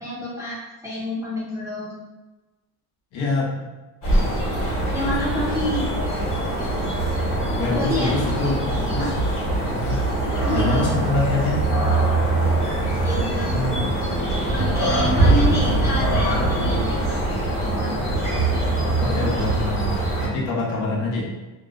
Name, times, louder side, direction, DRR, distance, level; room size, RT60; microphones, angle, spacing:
voice 1, 0.0-2.0 4.9-5.9 7.6-8.1 9.0-9.1 10.2-10.9 13.0-13.6 14.5-17.2 17.5-18.0 18.5-19.3, left 1 dB, 5° right, -9 dB, 0.4 m, -29 dB
voice 2, 3.1-3.5 7.6-9.0 9.7-10.0 10.5-11.6 13.5-13.9 19.0-21.2, left 3 dB, 80° left, -4 dB, 0.9 m, -25 dB
sound 1, 4.0-20.3, right 2 dB, 40° left, 1.0 m, -22 dB
2.5 x 2.0 x 2.4 m, 1.1 s
cardioid pair, 145°, 47 cm